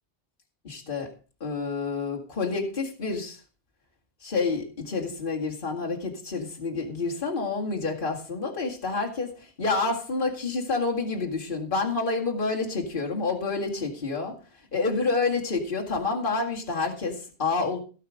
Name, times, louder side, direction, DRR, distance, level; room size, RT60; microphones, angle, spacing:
voice 1, 0.6-1.1 1.4-3.4 4.2-14.4 14.7-17.8, left 3 dB, 50° left, -1 dB, 2.3 m, -28 dB
17.0 x 5.8 x 5.1 m, 0.37 s
omnidirectional pair, 1.2 m